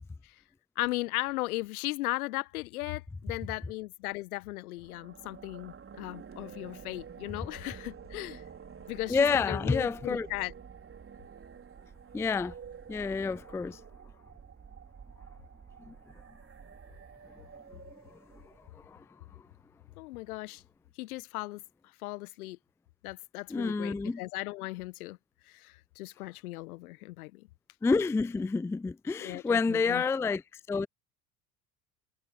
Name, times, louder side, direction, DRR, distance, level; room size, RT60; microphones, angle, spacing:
voice 1, 0.8-8.4 8.9-10.5 20.0-20.6 21.0-21.6 22.0-22.6 23.0-25.2 25.5-27.5 29.2-30.0, left 20 dB, 65° left, 1.4 m, -37 dB
sound 1, 4.7-18.8, right 7 dB, 30° right, 5.1 m, -49 dB
voice 2, 9.1-10.3 12.1-12.5 12.9-13.8 15.8-15.9 17.3-17.8 18.1-19.0 19.3-19.4 23.5-24.2 27.8-30.4 30.7-30.9, left 4 dB, 5° left, 0.4 m, -29 dB
figure-of-eight pair, 65°, 46 cm